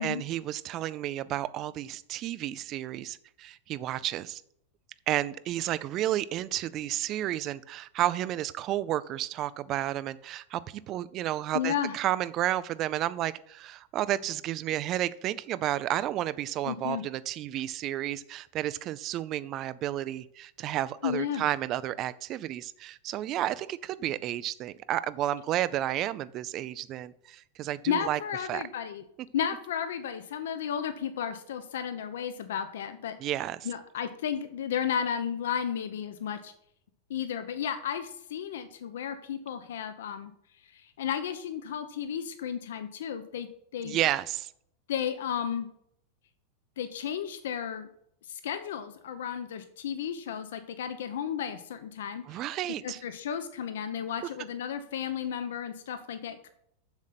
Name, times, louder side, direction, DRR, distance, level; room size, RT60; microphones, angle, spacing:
voice 1, 0.0-4.4 5.1-28.2 28.5-28.6 33.2-33.7 43.8-44.5 52.2-53.0, right 13 dB, 25° right, 16 dB, 0.3 m, -31 dB
voice 2, 11.5-12.0 16.6-17.0 21.0-21.4 27.9-29.0 29.3-33.2 33.6-36.5 37.1-40.3 40.6-44.0 44.9-45.7 46.8-47.9 48.3-52.5 52.8-56.5, left 8 dB, 75° left, 10 dB, 0.8 m, -33 dB
7.3 x 6.6 x 5.8 m, 0.72 s
supercardioid pair, 180°, 0 cm